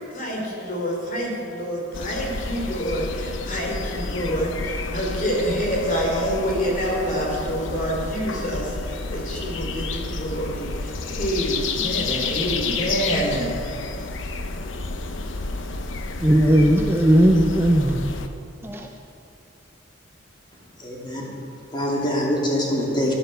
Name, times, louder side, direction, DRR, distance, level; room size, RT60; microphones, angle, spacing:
voice 1, 0.1-8.7 9.1-13.5, equal, 45° left, -1 dB, 3.2 m, -27 dB
sound 1, 1.9-18.3, left 3 dB, 80° left, 0.9 m, -30 dB
voice 2, 16.2-18.1 18.6-18.9, equal, 10° right, 2 dB, 0.7 m, -17 dB
voice 3, 20.8-21.3 21.7-23.1, equal, 25° left, -3 dB, 2.9 m, -24 dB
12.0 x 11.0 x 6.7 m, 2.7 s
head